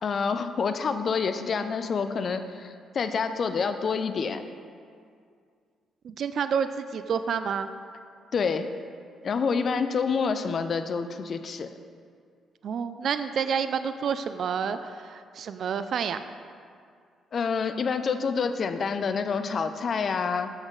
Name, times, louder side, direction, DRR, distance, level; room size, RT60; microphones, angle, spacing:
voice 1, 0.0-4.4 8.3-8.7 9.2-11.7 17.3-20.5, left 5 dB, 50° left, 10 dB, 0.4 m, -27 dB
voice 2, 6.0-7.7 12.6-16.2, right 7 dB, 60° right, 11 dB, 0.3 m, -29 dB
7.9 x 6.1 x 3.8 m, 2.2 s
cardioid pair, 90°, 0 cm